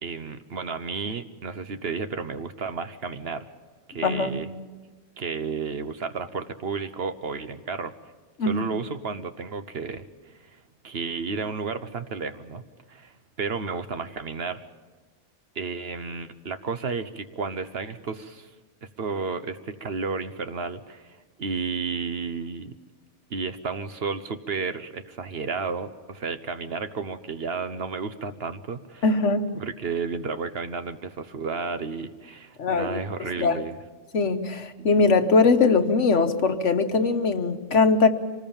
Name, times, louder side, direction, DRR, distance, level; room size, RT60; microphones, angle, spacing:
voice 1, 0.0-3.5 3.9-4.5 5.2-7.9 8.5-10.6 10.8-12.6 12.9-13.1 13.4-14.6 15.5-18.5 18.8-22.7 23.3-29.0 29.5-33.8 34.8-34.9, right 5 dB, 60° right, 10 dB, 1.2 m, -32 dB
voice 2, 4.0-4.4 8.4-8.5 29.0-29.5 32.6-33.6 34.1-38.1, left 4 dB, 75° left, 8 dB, 1.5 m, -21 dB
25.0 x 19.5 x 7.2 m, 1.3 s
omnidirectional pair, 1.2 m